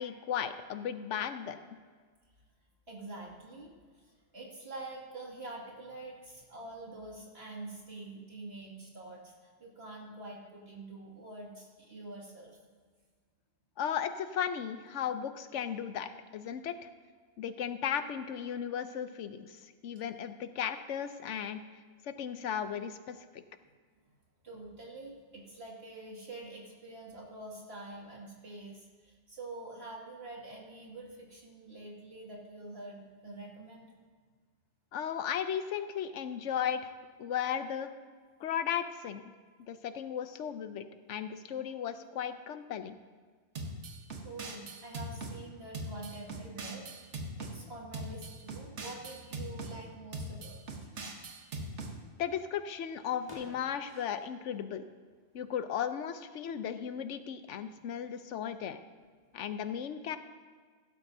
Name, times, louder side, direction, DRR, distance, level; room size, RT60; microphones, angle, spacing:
voice 1, 0.0-1.6 13.8-16.7 17.4-19.6 19.8-21.6 22.0-23.4 34.9-36.9 37.2-37.9 38.4-39.3 39.7-43.0 52.2-54.8 55.3-58.8 59.3-60.2, left 8 dB, 85° left, 10 dB, 1.0 m, -35 dB
voice 2, 2.9-12.5 24.4-33.9 44.2-50.9, right 2 dB, 60° right, -3 dB, 2.5 m, -46 dB
sound 1, 43.5-45.4 45.7-47.5 47.9-49.7 50.1-51.9, right 2 dB, 75° right, 1.4 m, -40 dB
sound 2, 50.9-54.8 55.4-55.5 55.7-56.3 56.7-57.2, left 2 dB, 25° left, 1.6 m, -55 dB
16.0 x 12.0 x 2.7 m, 1.5 s
omnidirectional pair, 1.2 m